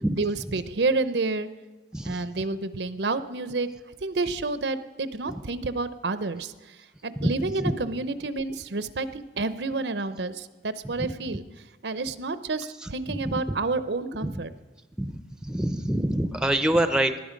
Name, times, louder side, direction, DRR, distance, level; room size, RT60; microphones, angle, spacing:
voice 1, 0.2-1.5 2.0-3.7 4.0-6.5 7.0-11.4 11.8-14.5, right 3 dB, 75° right, 13 dB, 0.7 m, -29 dB
voice 2, 1.9-2.2 5.3-5.4 7.2-7.3 7.6-7.7 11.0-11.1 13.1-13.6 14.2-14.4 15.0-17.2, right 1 dB, 5° right, 9 dB, 0.6 m, -26 dB
19.0 x 11.5 x 5.2 m, 1.2 s
head